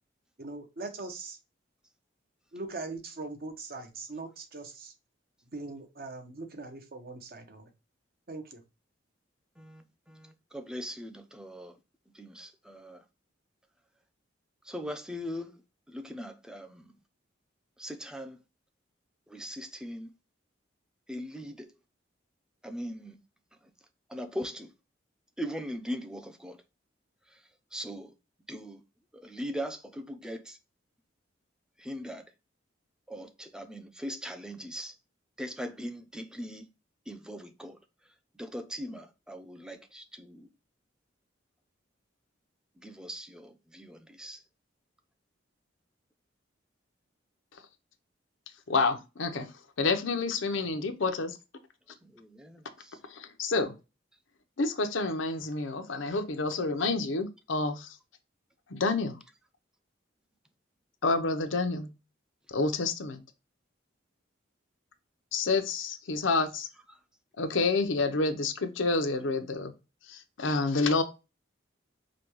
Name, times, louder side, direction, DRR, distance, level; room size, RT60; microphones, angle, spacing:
voice 1, 0.4-1.4 2.5-4.9 5.5-7.7 8.3-8.6, right 3 dB, 50° right, 0.8 m, -41 dB
voice 2, 9.6-11.8 12.1-13.0 14.6-15.6 15.9-16.9 17.8-18.4 19.3-20.1 21.1-21.7 22.6-23.2 24.1-24.7 25.4-26.6 27.3-27.4 27.7-28.1 28.5-28.8 29.1-30.6 31.8-32.3 33.1-34.9 35.4-36.7 37.1-37.8 38.3-40.5 42.8-44.4 52.0-53.0, equal, 5° right, 0.4 m, -40 dB
voice 3, 48.7-49.5 49.8-51.4 53.1-53.8 54.6-58.0 58.7-59.2 61.0-61.9 62.5-63.2 65.3-66.7 67.4-69.7 70.1-71.0, left 3 dB, 85° left, 0.7 m, -28 dB
5.0 x 2.2 x 3.0 m
head